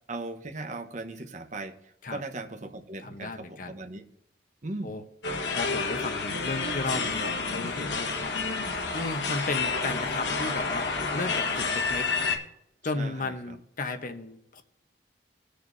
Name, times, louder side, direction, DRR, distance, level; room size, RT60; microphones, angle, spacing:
voice 1, 0.1-4.0 4.6-4.9 12.9-13.6, right 2 dB, 45° right, 7 dB, 1.0 m, -38 dB
voice 2, 3.0-3.8 4.8-5.0 5.5-8.4 8.9-12.1 12.8-14.6, left 3 dB, 50° left, 8 dB, 0.9 m, -34 dB
sound 1, 5.2-12.4, left 4 dB, 85° left, 1.4 m, -29 dB
19.5 x 6.7 x 2.6 m, 0.80 s
head